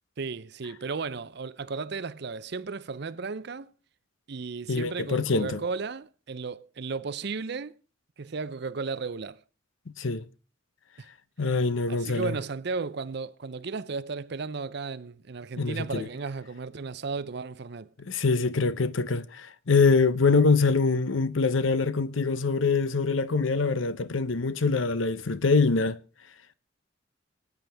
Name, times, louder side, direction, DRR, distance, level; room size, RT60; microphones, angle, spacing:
voice 1, 0.2-3.7 4.3-7.8 8.2-9.4 11.0-11.1 11.9-17.9, right 4 dB, 55° right, 0.6 m, -34 dB
voice 2, 4.7-5.6 10.0-10.2 11.4-12.3 15.6-16.0 18.1-26.0, left 4 dB, 70° left, 0.7 m, -24 dB
26.5 x 9.3 x 3.5 m
head